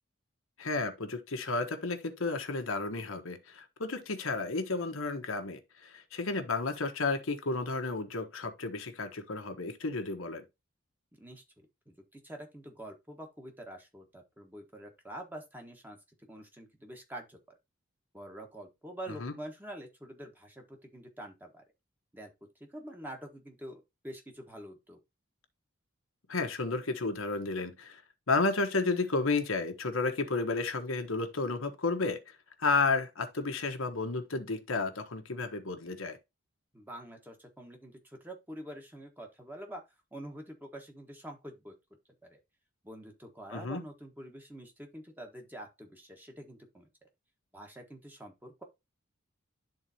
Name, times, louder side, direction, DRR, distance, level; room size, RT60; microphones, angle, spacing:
voice 1, 0.6-10.4 19.2-19.3 26.3-28.0 28.3-36.2 43.5-43.8, left 3 dB, 80° left, 1.2 m, -32 dB
voice 2, 11.2-17.6 18.1-21.6 22.1-22.3 22.6-25.0 36.7-39.8 40.1-41.7 42.2-42.4 42.8-46.9 47.5-48.6, right 1 dB, 10° right, 1.4 m, -46 dB
12.0 x 4.0 x 2.8 m
head